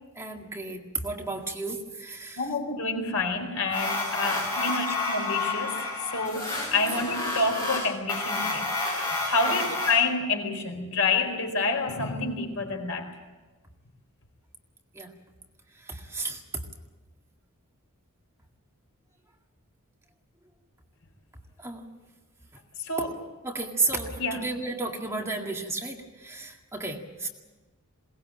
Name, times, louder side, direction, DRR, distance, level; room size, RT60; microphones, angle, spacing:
voice 1, 0.2-2.5 4.3-4.4 4.9-5.0 9.5-9.8 14.9-15.1 15.8-16.6 21.6-21.9 23.4-27.3, right 3 dB, 15° right, 1 dB, 2.0 m, -33 dB
voice 2, 2.4-13.1 22.8-23.1 24.2-24.4, left 3 dB, 75° left, 3 dB, 4.5 m, -28 dB
sound 1, 3.7-9.9, left 2 dB, 15° left, 6.6 m, -30 dB
22.0 x 19.0 x 8.8 m, 1.2 s
head